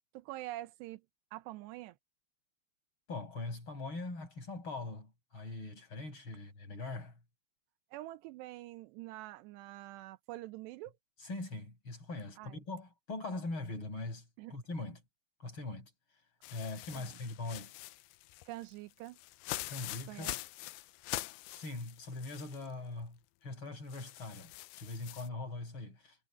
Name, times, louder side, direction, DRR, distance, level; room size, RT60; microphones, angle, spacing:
voice 1, 0.1-1.0 1.3-2.0 7.9-10.9 12.4-12.6 14.4-14.6 16.9-17.2 18.5-19.2 20.1-20.3, right 16 dB, 90° right, 3.0 m, -45 dB
voice 2, 3.1-7.2 11.2-15.0 15.4-15.9 16.5-17.7 19.7-20.3 21.5-26.2, left 2 dB, 30° left, 6.7 m, -42 dB
sound 1, 16.4-22.7 23.0-23.1 23.9-25.3, left 18 dB, 80° left, 2.3 m, -44 dB
omnidirectional pair, 4.8 m